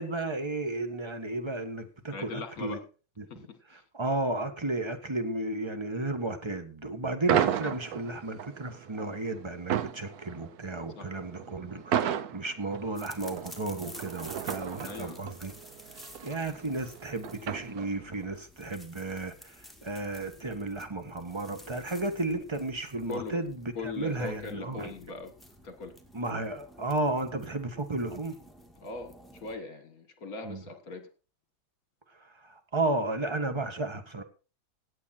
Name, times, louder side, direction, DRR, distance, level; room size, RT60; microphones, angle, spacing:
voice 1, 0.0-2.8 3.2-3.3 3.9-15.5 16.2-24.9 26.1-28.4 30.4-30.6 32.4-34.2, right 2 dB, 15° right, 1.2 m, -33 dB
voice 2, 2.1-2.9 3.3-3.8 11.0-11.1 14.9-15.2 23.1-23.4 23.7-25.3 25.6-26.0 28.8-31.1, left 3 dB, 45° left, 2.0 m, -40 dB
sound 1, 7.3-18.2, right 10 dB, 60° right, 1.1 m, -34 dB
sound 2, 12.9-29.6, left 1 dB, ahead, 1.9 m, -52 dB
16.5 x 9.0 x 4.4 m
omnidirectional pair, 2.2 m